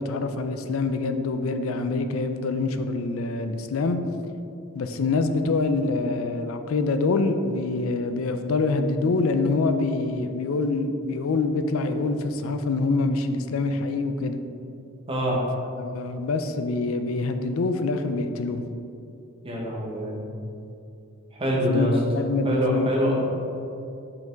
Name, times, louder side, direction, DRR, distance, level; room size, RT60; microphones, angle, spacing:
voice 1, 0.0-4.0 4.7-14.4 15.8-18.6 21.7-22.9, left 3 dB, 80° left, 8 dB, 0.4 m, -25 dB
voice 2, 15.1-15.4 19.4-20.2 21.4-21.9 22.4-23.1, equal, 25° right, -4 dB, 1.2 m, -24 dB
5.7 x 5.2 x 3.9 m, 2.7 s
head